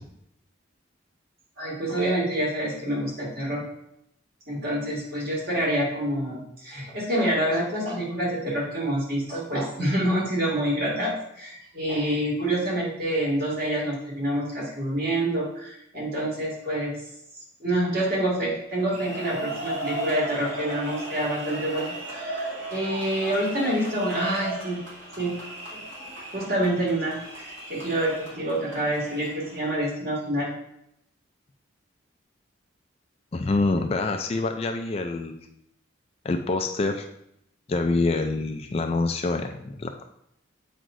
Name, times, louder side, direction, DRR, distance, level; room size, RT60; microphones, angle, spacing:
voice 1, 1.6-3.6 4.5-16.9 17.6-24.8 25.2-25.3 26.3-30.5, right 1 dB, 50° right, -5 dB, 2.1 m, -27 dB
sound 1, 18.7-29.8, right 2 dB, 70° right, 2.4 m, -36 dB
voice 2, 33.3-35.4 36.2-37.1 37.7-40.0, left 3 dB, 30° left, 5 dB, 0.3 m, -26 dB
7.6 x 5.0 x 2.5 m, 0.77 s
head